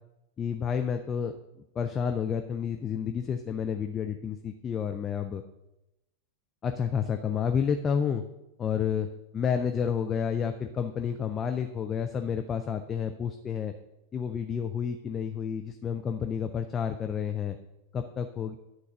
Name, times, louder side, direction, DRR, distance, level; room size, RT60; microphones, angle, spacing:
voice 1, 0.4-1.3 1.7-5.4 6.6-8.2 8.6-9.1 9.3-13.7 14.1-17.6 17.9-18.6, left 7 dB, 25° left, 6 dB, 0.5 m, -30 dB
11.0 x 3.9 x 6.3 m, 0.92 s
figure-of-eight pair, 90°, 0 cm